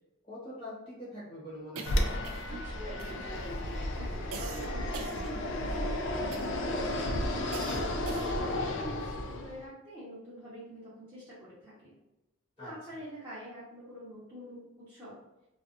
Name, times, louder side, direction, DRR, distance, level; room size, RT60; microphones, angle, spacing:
voice 1, 0.2-2.1 12.6-13.0, left 1 dB, 25° left, -9 dB, 0.8 m, -44 dB
sound 1, 1.8-2.7 3.0-3.5 4.3-5.8 6.3-6.7 7.5-8.5, right 4 dB, 70° right, 0.3 m, -43 dB
Fixed-wing aircraft airplane, 1.9-9.6, left 1 dB, 55° left, 0.3 m, -33 dB
voice 2, 2.5-7.2 7.6-12.0 12.6-15.2, equal, 10° right, -12 dB, 0.7 m, -45 dB
2.5 x 2.2 x 2.4 m, 0.95 s
head